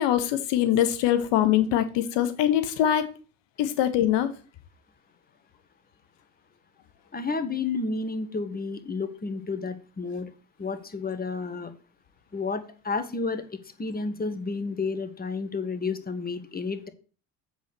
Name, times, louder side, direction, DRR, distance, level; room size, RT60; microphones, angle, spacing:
voice 1, 0.0-3.0 3.6-4.3, left 11 dB, 70° left, 11 dB, 1.1 m, -23 dB
voice 2, 7.1-10.3 10.6-11.7 12.3-13.4 13.8-16.9, left 4 dB, 20° left, 10 dB, 1.4 m, -31 dB
8.1 x 4.3 x 6.7 m, 0.38 s
hypercardioid pair, 60°, 45 cm